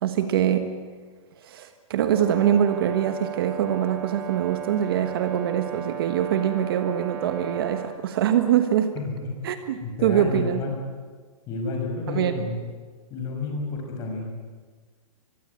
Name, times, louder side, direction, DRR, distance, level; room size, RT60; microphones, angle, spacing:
voice 1, 0.0-0.7 1.4-8.9 9.4-10.6 12.1-12.4, right 10 dB, 40° right, 8 dB, 1.5 m, -24 dB
Brass instrument, 2.1-7.9, right 11 dB, 25° right, 2.3 m, -36 dB
voice 2, 8.9-9.3 9.8-10.8 11.5-12.6 13.1-14.3, left 3 dB, 20° left, 1 dB, 6.0 m, -30 dB
24.0 x 23.0 x 9.8 m, 1.5 s
hypercardioid pair, 170°, 18 cm